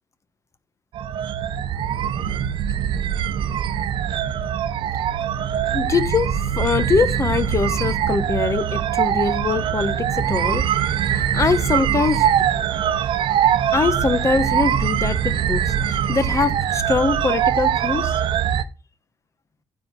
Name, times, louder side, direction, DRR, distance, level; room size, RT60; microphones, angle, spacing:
sound 1, 0.9-18.6, right 9 dB, 80° right, 0.8 m, -22 dB
voice 1, 5.7-10.7 11.0-12.3 13.7-18.2, left 4 dB, 35° left, 1.1 m, -23 dB
9.4 x 4.6 x 7.5 m
cardioid pair, 100°, 8 cm